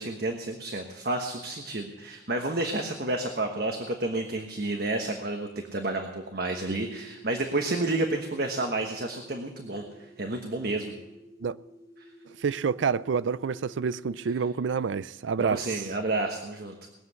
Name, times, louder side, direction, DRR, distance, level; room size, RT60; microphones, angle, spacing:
voice 1, 0.0-10.9 15.4-16.9, right 2 dB, 55° right, 1.2 m, -30 dB
sound 1, 6.5-14.3, right 2 dB, 20° left, 5.3 m, -52 dB
voice 2, 12.4-15.6, right 6 dB, 80° right, 0.4 m, -28 dB
20.0 x 7.7 x 8.2 m
head